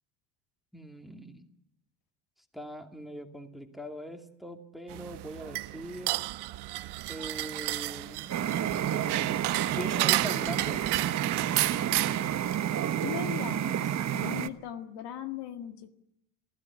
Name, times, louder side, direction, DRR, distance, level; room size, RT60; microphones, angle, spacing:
voice 1, 0.7-1.5 2.5-6.2 7.1-8.3 9.8-10.8, equal, ahead, 5 dB, 2.5 m, -41 dB
sound 1, 4.9-12.5, right 18 dB, 55° right, 1.0 m, -32 dB
sound 2, 8.3-14.5, right 10 dB, 35° right, 1.3 m, -30 dB
voice 2, 13.0-15.9, left 10 dB, 55° left, 8 dB, 1.9 m, -39 dB
27.0 x 16.0 x 9.8 m, 0.84 s
supercardioid pair, 110°, 48 cm